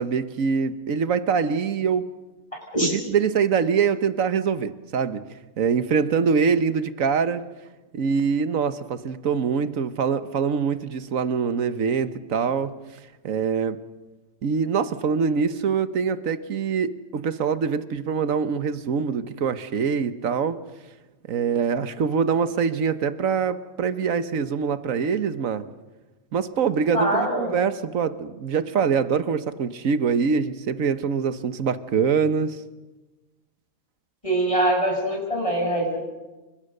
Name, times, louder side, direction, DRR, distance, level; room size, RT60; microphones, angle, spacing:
voice 1, 0.0-2.0 2.8-5.2 5.6-7.4 7.9-12.7 13.2-13.8 14.4-20.6 21.3-25.6 26.3-32.6, right 6 dB, 90° right, 12 dB, 1.5 m, -24 dB
voice 2, 26.9-27.5 34.2-36.0, right 1 dB, 25° left, -1 dB, 7.3 m, -23 dB
29.5 x 25.0 x 6.7 m, 1.1 s
omnidirectional pair, 1.4 m